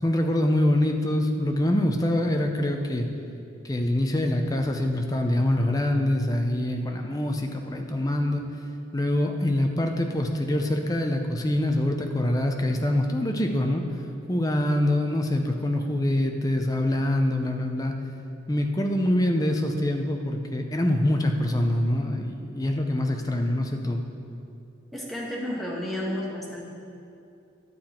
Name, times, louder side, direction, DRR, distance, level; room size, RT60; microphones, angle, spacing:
voice 1, 0.0-3.1 3.6-8.4 8.9-13.8 14.3-17.9 18.5-24.0, left 1 dB, 20° left, 3 dB, 0.6 m, -25 dB
voice 2, 24.9-26.6, left 1 dB, ahead, -5 dB, 1.4 m, -31 dB
11.0 x 7.7 x 4.4 m, 2.6 s
head